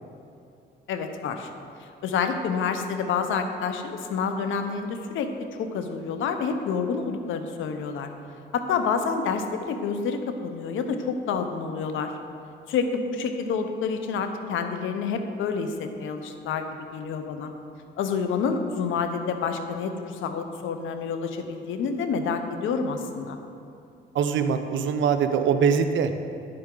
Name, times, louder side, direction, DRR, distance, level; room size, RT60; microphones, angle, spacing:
voice 1, 0.9-1.5 1.8-5.3 5.6-8.1 8.5-12.1 12.7-16.7 16.9-17.5 18.0-23.4, left 5 dB, 80° left, 7 dB, 0.8 m, -28 dB
voice 2, 24.1-26.1, right 6 dB, 70° right, 8 dB, 0.6 m, -22 dB
9.7 x 7.7 x 3.8 m, 2.6 s
cardioid pair, 90°, 20 cm